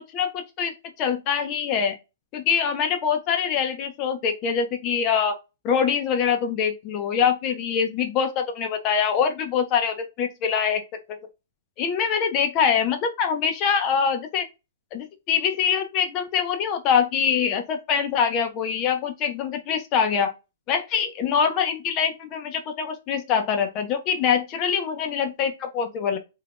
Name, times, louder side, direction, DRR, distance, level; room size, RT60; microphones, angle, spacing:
voice 1, 0.1-1.9 2.3-5.4 5.6-10.8 11.1-11.2 11.8-14.5 14.9-20.3 20.7-26.2, left 7 dB, 25° left, 0.4 m, -24 dB
2.4 x 2.1 x 3.4 m
hypercardioid pair, 155°, 0 cm